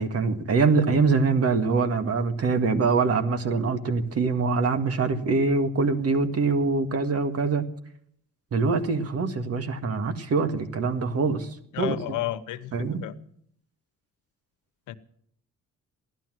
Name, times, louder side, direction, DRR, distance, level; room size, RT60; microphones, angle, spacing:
voice 1, 0.0-7.7 8.5-11.5 11.8-12.0 12.7-13.0, right 4 dB, 50° right, 1.9 m, -24 dB
voice 2, 11.7-12.7 13.0-13.1 14.9-15.0, left 14 dB, 85° left, 1.0 m, -31 dB
16.0 x 11.5 x 7.8 m
cardioid pair, 90°, 30 cm